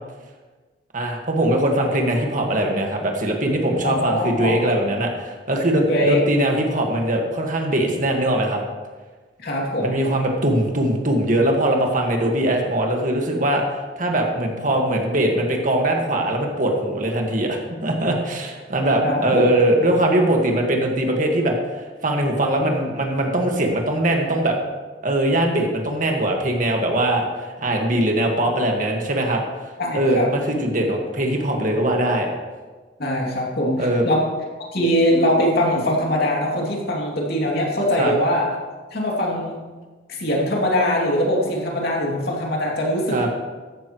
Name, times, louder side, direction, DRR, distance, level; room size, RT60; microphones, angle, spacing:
voice 1, 0.9-8.6 9.8-13.6 14.0-21.6 22.0-24.6 25.0-27.3 27.6-29.4 29.9-32.3 33.8-34.0 38.0-38.1 43.1-43.3, right 1 dB, 45° right, 1 dB, 1.7 m, -21 dB
voice 2, 3.8-4.5 5.9-6.2 9.4-10.0 14.5-14.7 19.0-19.5 29.8-30.3 33.0-34.2 34.7-38.5 38.9-39.6 40.2-43.2, equal, 60° left, -2 dB, 2.6 m, -22 dB
14.0 x 11.5 x 3.1 m, 1.3 s
head